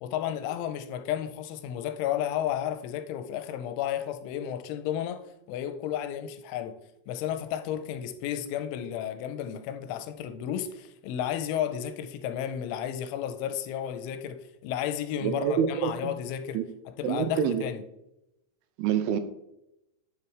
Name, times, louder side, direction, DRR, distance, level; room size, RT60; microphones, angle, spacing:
voice 1, 0.0-5.2 5.5-6.8 7.1-16.6 17.0-17.8, left 10 dB, 90° left, 3.1 m, -32 dB
voice 2, 15.2-16.1 16.5-16.7 17.0-17.6 18.8-19.2, right 8 dB, 85° right, 3.2 m, -26 dB
9.7 x 7.5 x 3.4 m
omnidirectional pair, 5.5 m